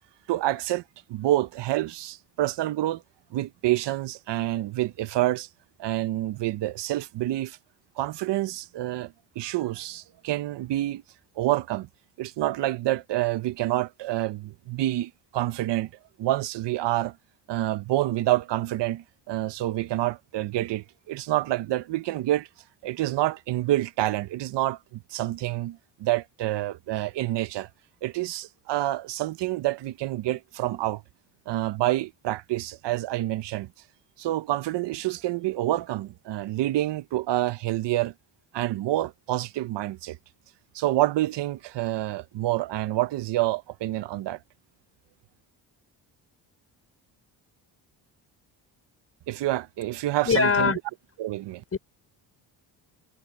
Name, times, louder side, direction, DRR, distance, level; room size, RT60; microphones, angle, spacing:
voice 1, 0.3-0.8 1.1-3.0 3.3-5.5 5.8-7.6 8.0-11.0 11.4-11.9 12.2-15.9 16.2-17.2 17.5-22.5 22.8-27.7 28.0-31.0 31.5-33.7 34.2-38.1 38.5-40.2 40.7-44.4 49.3-50.7 51.2-51.6, right 15 dB, 75° right, 1.1 m, -27 dB
voice 2, 50.2-50.8 51.7-51.8, left 5 dB, 30° left, 4.9 m, -21 dB
cardioid pair, 100°, 43 cm